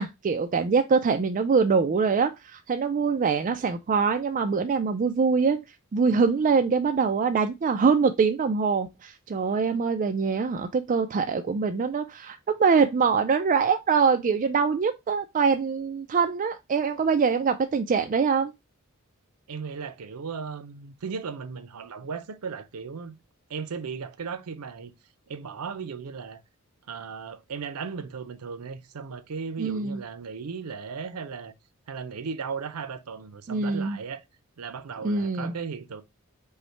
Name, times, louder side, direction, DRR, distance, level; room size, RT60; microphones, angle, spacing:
voice 1, 0.0-5.6 5.9-18.5 29.6-30.0 33.5-34.0 35.0-35.5, right 5 dB, 35° right, 0.3 m, -24 dB
voice 2, 19.5-23.2 23.5-24.9 25.3-26.4 26.9-31.5 31.9-34.2 34.6-36.0, right 5 dB, 90° right, 0.5 m, -36 dB
5.4 x 2.1 x 4.3 m
head